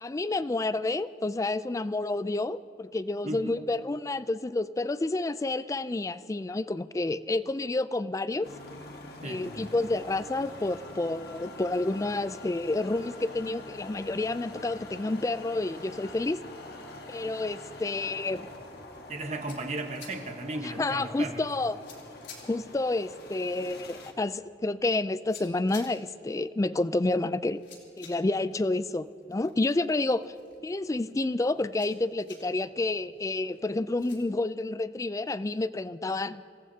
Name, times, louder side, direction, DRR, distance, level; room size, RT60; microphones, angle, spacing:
voice 1, 0.0-8.5 9.2-16.4 17.1-18.5 20.6-21.8 22.5-27.6 28.0-30.3 30.6-36.4, left 2 dB, 20° left, 15 dB, 0.3 m, -29 dB
voice 2, 3.2-3.6 9.2-9.5 19.1-21.5, right 2 dB, 40° right, 5 dB, 1.2 m, -35 dB
sound 1, 8.4-24.1, left 2 dB, 60° left, 1.5 m, -45 dB
sound 2, 19.1-34.2, left 5 dB, 90° left, 3.6 m, -55 dB
27.5 x 18.0 x 2.8 m, 2.6 s
head